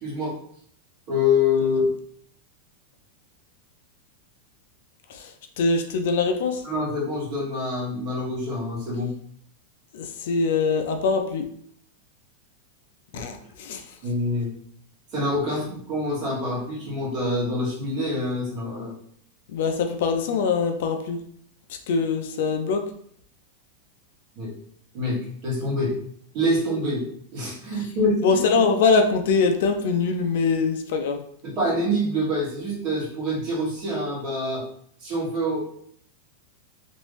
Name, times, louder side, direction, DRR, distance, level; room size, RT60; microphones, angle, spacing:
voice 1, 0.0-0.4 1.1-1.9 6.6-9.1 13.1-13.3 14.0-14.5 15.1-18.9 24.3-24.5 24.9-25.9 26.3-27.0 27.3-28.4 31.4-34.6 35.0-35.6, left 1 dB, 40° right, -5 dB, 1.5 m, -26 dB
voice 2, 5.1-6.6 9.9-11.4 13.1-13.9 19.5-21.2 21.9-22.8 28.2-31.2, left 4 dB, 65° left, 5 dB, 0.5 m, -23 dB
3.1 x 2.6 x 3.2 m, 0.64 s
supercardioid pair, 165°, 0 cm